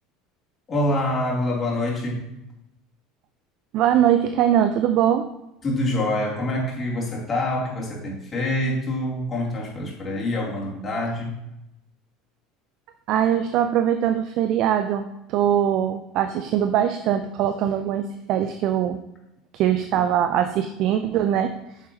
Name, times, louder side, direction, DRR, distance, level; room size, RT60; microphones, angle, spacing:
voice 1, 0.7-2.3 5.6-11.3, left 1 dB, 30° left, -4 dB, 3.2 m, -26 dB
voice 2, 3.7-5.3 13.1-19.0 19.5-21.5, right 10 dB, 55° right, 9 dB, 0.5 m, -22 dB
9.2 x 7.0 x 2.9 m, 0.89 s
hypercardioid pair, 70°, 0 cm